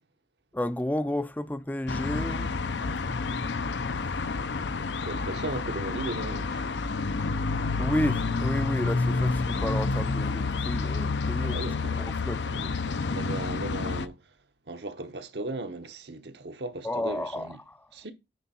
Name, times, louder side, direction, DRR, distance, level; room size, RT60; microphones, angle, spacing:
voice 1, 0.5-2.6 7.8-12.5 16.8-17.9, left 1 dB, 10° left, 0.4 m, -32 dB
sound 1, 1.9-14.1, left 4 dB, 75° left, 0.6 m, -29 dB
voice 2, 5.0-6.7 11.4-12.0 12.4-14.3 14.7-17.6 17.9-18.1, right 2 dB, 65° right, 1.0 m, -37 dB
9.2 x 4.6 x 4.3 m
head